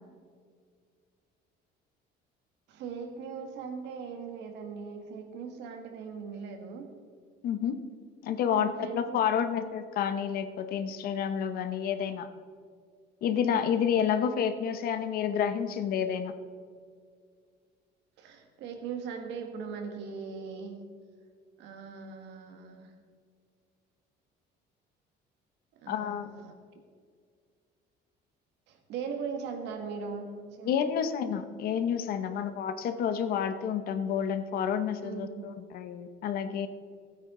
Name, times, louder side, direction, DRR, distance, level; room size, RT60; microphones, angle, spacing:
voice 1, 2.7-6.9 8.5-9.3 18.2-20.8 21.6-22.9 25.8-26.5 28.7-30.7 35.0-35.5, right 5 dB, 75° right, 4 dB, 1.8 m, -39 dB
voice 2, 7.4-7.8 8.2-12.3 13.2-16.3 25.9-26.3 30.6-36.7, left 8 dB, 55° left, 9 dB, 0.9 m, -29 dB
16.0 x 9.2 x 3.8 m, 2.1 s
cardioid pair, 170°, 18 cm